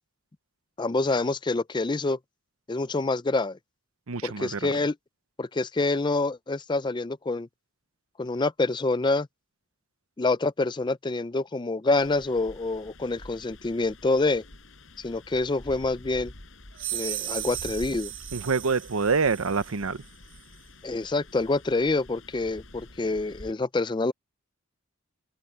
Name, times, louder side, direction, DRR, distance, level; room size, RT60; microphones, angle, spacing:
voice 1, 0.8-2.2 2.7-3.6 4.2-4.9 5.4-7.5 8.2-9.3 10.2-14.4 15.0-16.3 16.9-18.1 20.8-24.1, left 3 dB, 20° left, 0.4 m, -26 dB
voice 2, 4.1-4.7 18.3-20.0, right 4 dB, 85° right, 0.8 m, -26 dB
sound 1, 12.0-23.5, left 1 dB, 65° left, 5.0 m, -48 dB
sound 2, 16.8-19.8, right 14 dB, 65° right, 2.9 m, -36 dB
head